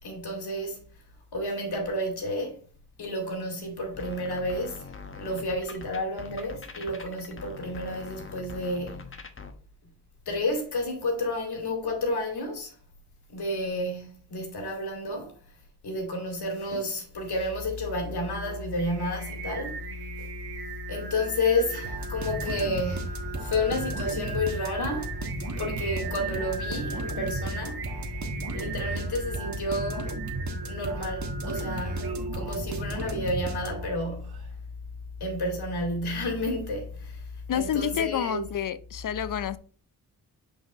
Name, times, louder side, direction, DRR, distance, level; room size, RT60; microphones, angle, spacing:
voice 1, 0.0-0.8 1.3-2.6 3.0-9.2 10.3-12.7 13.3-15.3 15.8-19.8 20.2-20.3 20.9-25.2 25.6-28.1 28.5-30.2 30.6-34.4 35.2-38.4, left 1 dB, 70° left, 2.5 m, -31 dB
sound 1, 3.9-9.5, left 4 dB, 30° left, 1.1 m, -43 dB
Singing, 18.3-34.5, right 4 dB, 70° right, 1.6 m, -40 dB
sound 2, 21.8-34.1, right 2 dB, 45° right, 1.4 m, -35 dB
voice 2, 37.5-39.6, left 9 dB, 50° left, 0.6 m, -29 dB
5.7 x 5.4 x 3.0 m
cardioid pair, 70°, 40 cm